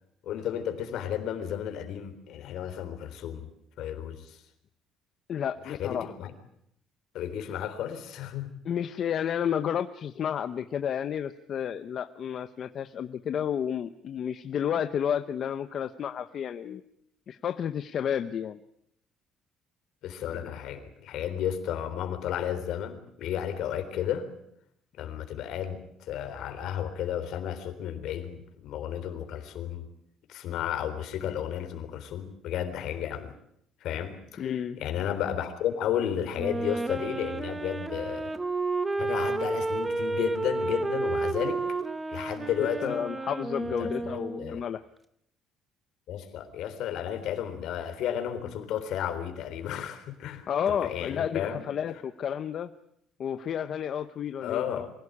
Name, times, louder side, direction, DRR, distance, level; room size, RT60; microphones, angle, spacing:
voice 1, 0.2-3.5 3.8-4.4 5.6-6.3 7.1-8.5 20.0-24.3 25.0-29.9 30.3-33.3 33.8-38.3 39.0-41.6 42.1-43.0 43.8-44.1 44.4-44.6 46.1-50.5 50.8-51.6 54.4-54.9, left 9 dB, 65° left, 8 dB, 3.7 m, -33 dB
voice 2, 5.3-6.1 8.6-16.8 17.3-18.6 34.4-34.8 42.8-44.8 50.5-52.7 53.2-54.9, left 8 dB, 40° left, 10 dB, 0.8 m, -31 dB
Wind instrument woodwind instrument, 36.3-44.7, right 3 dB, 10° right, 1.0 m, -31 dB
24.5 x 16.5 x 9.9 m, 0.74 s
cardioid pair, 160°, 0 cm